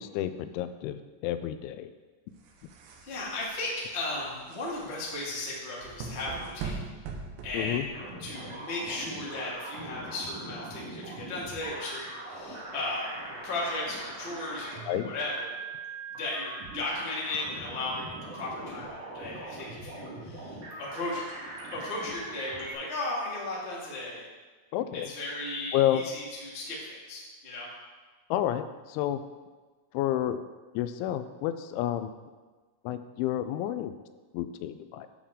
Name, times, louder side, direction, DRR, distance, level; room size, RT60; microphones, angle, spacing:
voice 1, 0.0-1.9 7.5-7.9 14.9-15.1 24.7-25.1 25.7-26.0 28.3-29.2 29.9-30.4 30.8-32.1 32.8-33.9 34.3-35.1, left 12 dB, 85° left, 11 dB, 2.9 m, -30 dB
sound 1, 2.4-8.3, right 5 dB, 80° right, 3.1 m, -41 dB
voice 2, 3.0-6.8 7.4-13.1 13.4-15.6 16.1-21.2 21.7-24.2 24.9-27.7, left 2 dB, 65° left, -6 dB, 0.6 m, -36 dB
sound 2, 7.9-22.7, right 2 dB, 60° right, 1.6 m, -42 dB
10.0 x 7.1 x 3.6 m, 1.3 s
omnidirectional pair, 5.4 m